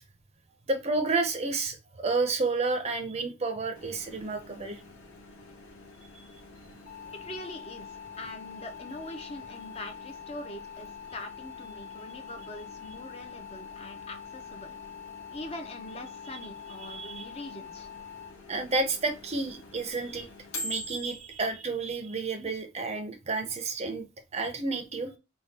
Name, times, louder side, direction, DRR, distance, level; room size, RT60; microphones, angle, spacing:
voice 1, 0.7-4.8 16.8-17.2 18.5-20.3 20.6-24.1 24.3-25.1, right 3 dB, 30° right, 7 dB, 0.5 m, -30 dB
Microwave oven, 3.7-21.5, left 1 dB, 80° left, 0.9 m, -47 dB
sound 1, 6.9-18.3, left 8 dB, 55° left, 1.2 m, -45 dB
voice 2, 7.1-14.7 15.3-17.9, left 1 dB, 30° left, 6 dB, 0.5 m, -43 dB
3.4 x 2.2 x 4.0 m, 0.26 s
head